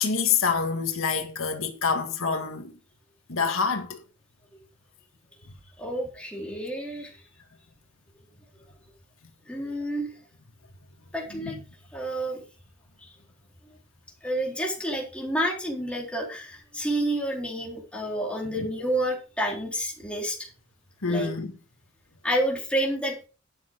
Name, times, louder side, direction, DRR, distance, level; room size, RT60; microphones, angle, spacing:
voice 1, 0.0-2.7 3.3-4.0 11.4-11.5 18.6-18.7 21.0-21.5, left 5 dB, 75° left, 1.9 m, -26 dB
voice 2, 5.8-7.1 9.5-10.1 11.1-11.6 11.9-12.4 13.0-13.1 13.6-13.8 14.2-20.5 21.0-21.3 22.2-23.3, right 1 dB, 5° left, 3.9 m, -29 dB
12.5 x 8.9 x 3.7 m
head